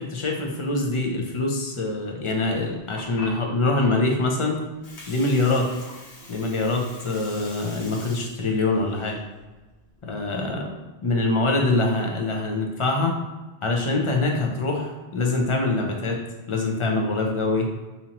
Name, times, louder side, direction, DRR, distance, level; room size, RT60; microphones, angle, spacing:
voice 1, 0.1-4.6 5.1-5.7 6.3-9.2 10.0-10.7 11.0-13.1 13.6-16.2 16.5-17.7, left 2 dB, 40° left, 1 dB, 0.5 m, -24 dB
Water, 2.6-10.5, left 2 dB, 90° left, 1.2 m, -44 dB
4.3 x 2.7 x 2.8 m, 1.2 s
omnidirectional pair, 1.1 m